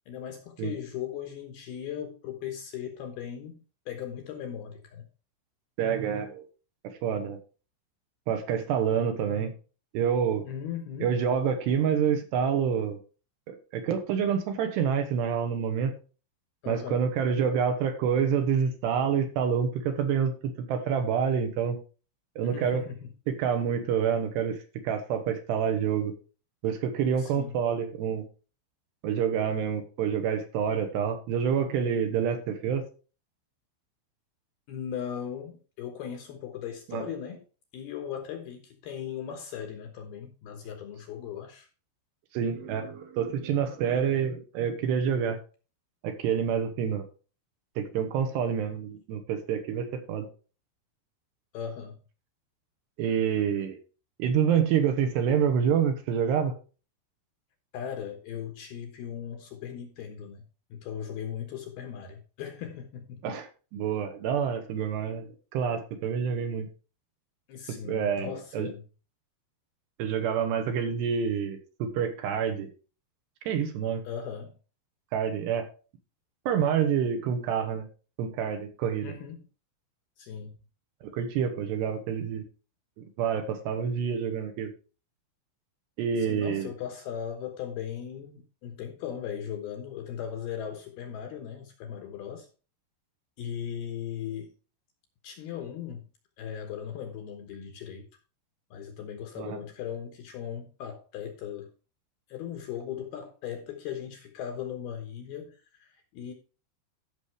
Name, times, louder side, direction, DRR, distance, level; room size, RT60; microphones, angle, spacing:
voice 1, 0.1-5.1 10.5-11.1 16.6-17.0 22.4-23.1 27.2-27.6 34.7-37.4 37.7-41.7 51.5-52.0 57.7-60.4 60.7-63.3 67.5-68.8 74.0-74.6 79.0-79.5 80.2-80.6 86.2-92.5 93.4-94.5 95.2-96.0 96.4-98.1 98.7-101.7 102.3-106.3, left 9 dB, 70° left, 2.6 m, -38 dB
voice 2, 5.8-6.5 6.8-7.4 8.3-9.5 9.9-10.5 11.0-13.0 13.5-15.9 16.7-21.8 22.4-22.8 23.3-24.6 24.8-26.1 26.6-28.3 29.0-32.8 36.9-37.1 42.3-45.4 46.0-47.0 47.8-50.3 53.0-53.8 54.2-56.5 63.2-63.5 63.7-65.3 65.5-66.7 67.8-68.7 70.0-72.7 73.5-74.0 75.1-75.7 76.5-77.9 78.2-79.1 81.0-82.4 83.2-84.7 86.0-86.7 99.4-99.6, right 7 dB, 70° right, 3.0 m, -27 dB
14.0 x 6.1 x 3.3 m
omnidirectional pair, 5.6 m